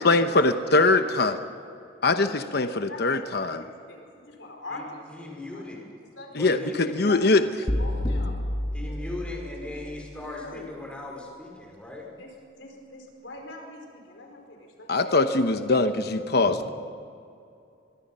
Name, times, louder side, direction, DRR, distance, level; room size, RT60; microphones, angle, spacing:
voice 1, 0.0-1.4 2.0-3.6 6.3-7.4 14.9-16.7, left 3 dB, 55° left, 8 dB, 0.9 m, -22 dB
voice 2, 0.7-1.2 2.6-5.6 6.2-8.4 8.9-9.0 9.3-9.4 9.8-10.7 12.2-12.3 12.6-15.3 16.4-16.6, left 2 dB, 75° left, 1 dB, 4.9 m, -43 dB
voice 3, 4.7-5.9 6.3-7.1 8.7-12.1, left 2 dB, 5° left, -1 dB, 5.0 m, -38 dB
sound 1, 7.7-9.8, left 1 dB, 25° left, 1.9 m, -29 dB
24.0 x 23.0 x 5.6 m, 2.5 s
head